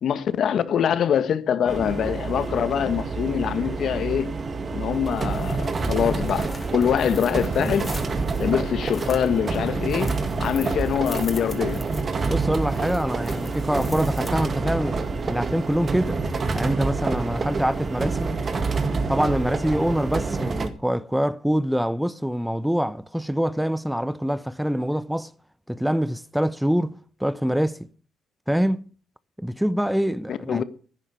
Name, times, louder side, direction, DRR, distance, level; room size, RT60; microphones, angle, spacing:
voice 1, 0.0-4.3 4.7-7.9 8.4-10.1 10.4-11.8 30.3-30.6, left 8 dB, 65° left, 1.4 m, -24 dB
sound 1, 1.7-20.7, right 4 dB, 40° right, 2.0 m, -27 dB
sound 2, 4.9-14.8, left 2 dB, 20° left, 3.4 m, -40 dB
voice 2, 12.3-15.0 15.3-16.2 16.5-18.4 19.1-25.3 25.7-27.8 28.5-28.9 29.4-30.6, equal, 5° right, 0.6 m, -25 dB
11.0 x 10.0 x 9.1 m
cardioid pair, 90°, 0 cm